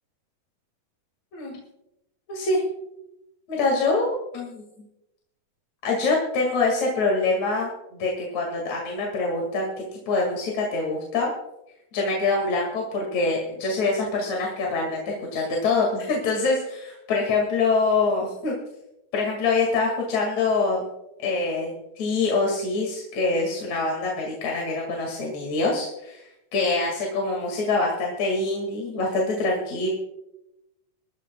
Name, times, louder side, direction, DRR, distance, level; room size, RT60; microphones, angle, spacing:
voice 1, 2.3-2.6 3.5-4.6 5.8-11.3 11.9-18.6 19.1-20.9 21.2-26.2 26.5-29.9, left 3 dB, 50° left, -1 dB, 3.0 m, -25 dB
26.0 x 11.5 x 2.3 m, 0.88 s
omnidirectional pair, 4.3 m